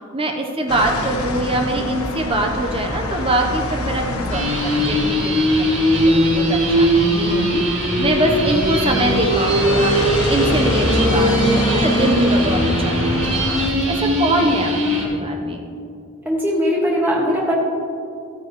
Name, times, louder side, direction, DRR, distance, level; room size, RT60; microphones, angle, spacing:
voice 1, 0.1-9.9 10.3-13.5 13.9-14.7 15.0-15.7, right 1 dB, 25° right, 2 dB, 0.8 m, -23 dB
sound 1, 0.7-13.7, left 1 dB, 80° left, 1.1 m, -25 dB
sound 2, 4.3-15.0, equal, 55° right, 2.1 m, -19 dB
voice 2, 16.2-17.5, equal, 10° right, -4 dB, 1.7 m, -19 dB
13.0 x 9.6 x 3.1 m, 2.6 s
head